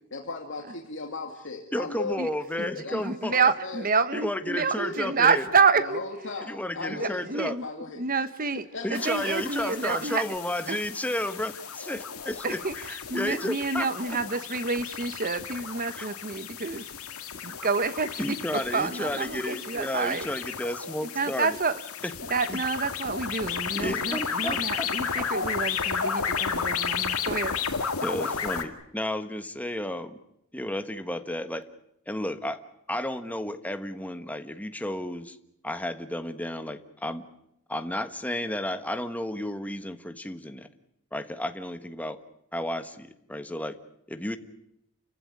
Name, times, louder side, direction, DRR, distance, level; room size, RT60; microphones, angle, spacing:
voice 1, 0.1-3.0 3.3-3.8 4.5-5.1 5.8-8.0 8.7-9.4, left 3 dB, 60° left, 2.5 m, -37 dB
voice 2, 1.7-3.3 4.1-5.4 6.5-7.6 8.8-12.6 12.9-13.9 16.0-16.1 18.2-21.6 22.5-22.6 23.7-24.9 28.0-30.2 30.5-31.7 32.1-32.6 32.9-35.4 35.6-37.3 37.7-40.7 41.1-42.2 42.5-43.8 44.1-44.4, left 1 dB, 5° left, 1.4 m, -32 dB
voice 3, 2.9-6.0 6.9-7.6 8.0-10.2 10.7-10.8 12.4-17.2 17.4-20.3 21.0-21.8 22.3-27.6, right 4 dB, 40° right, 1.2 m, -28 dB
sound 1, 8.9-28.6, left 6 dB, 80° left, 2.3 m, -33 dB
29.5 x 15.5 x 9.7 m
head